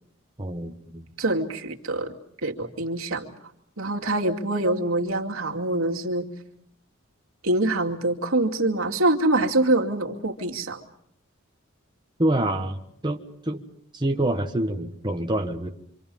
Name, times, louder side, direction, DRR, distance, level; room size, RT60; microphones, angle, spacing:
voice 1, 0.4-1.1 12.2-12.8 13.0-13.2 13.4-13.7 13.9-15.7, right 1 dB, 20° right, 2 dB, 1.5 m, -26 dB
voice 2, 1.2-3.3 3.8-6.3 7.4-10.8, right 2 dB, 80° right, 1 dB, 2.5 m, -25 dB
27.0 x 26.5 x 5.5 m, 0.69 s
head